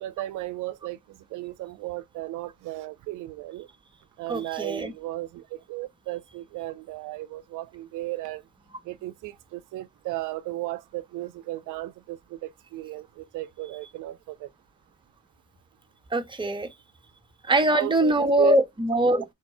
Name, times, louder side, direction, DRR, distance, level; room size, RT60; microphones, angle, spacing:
voice 1, 0.0-3.7 4.2-8.4 8.8-14.5 17.5-18.5, right 17 dB, 85° right, 0.5 m, -35 dB
voice 2, 4.3-4.9 16.1-16.7 17.4-19.2, right 1 dB, 15° right, 1.1 m, -22 dB
4.1 x 2.6 x 4.7 m
cardioid pair, 90°, 30 cm